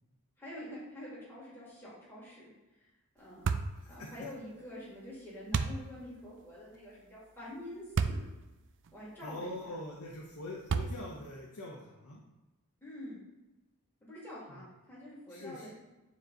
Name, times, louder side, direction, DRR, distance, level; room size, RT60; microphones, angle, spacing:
voice 1, 0.4-2.5 3.1-3.5 3.9-8.2 8.9-9.8 12.8-13.2 14.0-15.7, left 1 dB, 10° left, -9 dB, 2.1 m, -46 dB
sound 1, 3.5-3.8 5.5-5.8 8.0-8.3 8.9-9.0 10.7-11.2, right 5 dB, 55° right, 0.4 m, -30 dB
voice 2, 9.2-12.2 14.5-14.6 15.3-15.7, left 1 dB, 80° left, -2 dB, 1.0 m, -43 dB
9.4 x 3.2 x 3.9 m, 1.1 s
head